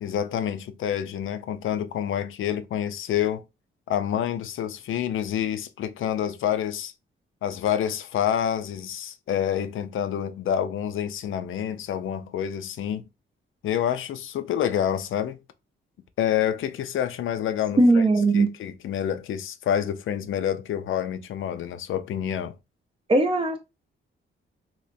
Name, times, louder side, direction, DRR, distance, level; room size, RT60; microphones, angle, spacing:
voice 1, 0.0-3.4 3.9-6.9 7.4-13.0 13.6-15.4 16.2-18.0 18.3-22.5, left 9 dB, 70° left, 0.5 m, -28 dB
voice 2, 17.8-18.5 23.1-23.6, right 2 dB, 25° right, 0.5 m, -19 dB
3.3 x 2.9 x 2.6 m
wide cardioid pair, 175°, 21 cm